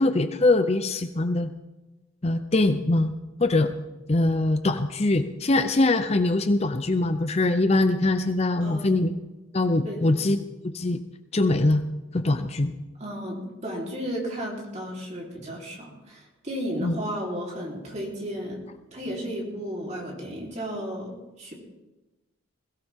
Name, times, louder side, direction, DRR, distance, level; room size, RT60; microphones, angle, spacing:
voice 1, 0.0-1.5 2.2-3.1 3.4-3.7 4.1-9.1 9.5-10.4 10.6-11.0 11.3-11.8 12.1-12.7 16.8-17.0, left 2 dB, 30° left, 9 dB, 0.6 m, -22 dB
voice 2, 8.6-9.0 9.8-10.1 13.0-18.6 18.9-21.5, equal, 35° right, -2 dB, 3.8 m, -34 dB
21.5 x 16.0 x 3.7 m, 1.1 s
head